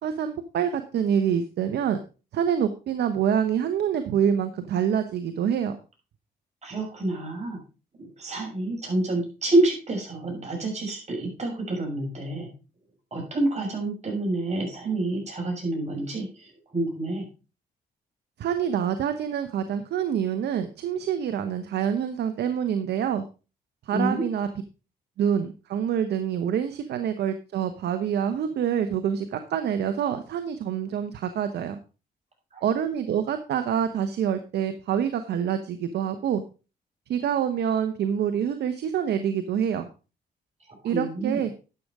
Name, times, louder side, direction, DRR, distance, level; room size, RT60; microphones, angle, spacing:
voice 1, 0.0-2.0 2.3-5.8 18.4-23.2 23.8-24.5 25.2-31.8 32.6-36.4 37.1-39.9 40.8-41.5, right 8 dB, 75° right, 9 dB, 1.0 m, -26 dB
voice 2, 6.6-7.6 8.2-12.5 13.1-17.2 23.9-24.2 32.5-32.6 40.8-41.4, right 2 dB, 40° right, -1 dB, 6.7 m, -28 dB
11.0 x 6.7 x 4.7 m, 0.33 s
supercardioid pair, 65°, 17 cm